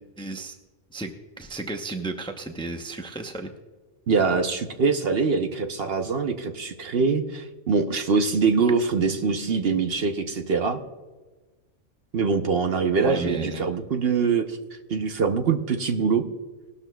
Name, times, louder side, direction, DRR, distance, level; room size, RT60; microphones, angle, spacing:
voice 1, 0.2-0.6 0.9-3.5 13.0-13.7, right 2 dB, 5° left, 5 dB, 0.6 m, -33 dB
voice 2, 4.1-10.8 12.1-14.6 14.9-16.2, right 5 dB, 55° right, 6 dB, 0.9 m, -23 dB
18.5 x 12.5 x 2.3 m, 1.2 s
omnidirectional pair, 1.3 m